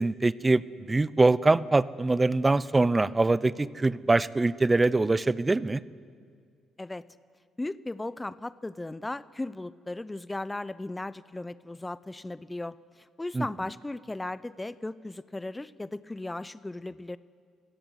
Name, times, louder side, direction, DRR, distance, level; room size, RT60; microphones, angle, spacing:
voice 1, 0.0-5.8 13.3-13.5, right 2 dB, 25° right, 19 dB, 0.8 m, -23 dB
voice 2, 7.6-17.2, left 2 dB, 15° left, 17 dB, 0.7 m, -36 dB
28.0 x 17.0 x 8.1 m, 2.1 s
hypercardioid pair, 50°, 0 cm